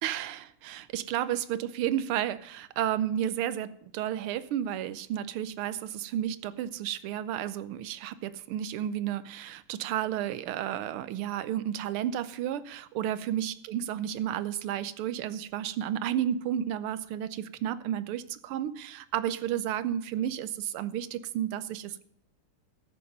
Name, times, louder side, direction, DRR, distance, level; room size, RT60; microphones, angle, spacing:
voice 1, 0.0-22.0, right 10 dB, 85° right, 15 dB, 1.6 m, -32 dB
14.5 x 6.8 x 5.3 m, 0.69 s
omnidirectional pair, 2.4 m